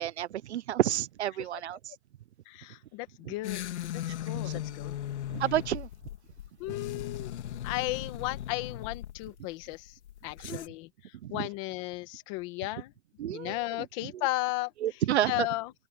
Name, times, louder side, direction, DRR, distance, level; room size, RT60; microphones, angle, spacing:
voice 1, 0.0-1.9 3.3-3.4 4.4-4.6 5.3-5.9 10.4-10.6 11.2-11.5 13.2-13.6 14.8-15.5, right 11 dB, 60° right, 0.9 m, -30 dB
voice 2, 2.4-5.0 6.6-7.3 7.6-12.9 13.3-14.7 15.3-15.7, left 19 dB, 25° left, 1.7 m, -35 dB
sound 1, 3.4-10.7, left 11 dB, 60° left, 3.2 m, -38 dB
hypercardioid pair, 175°, 39 cm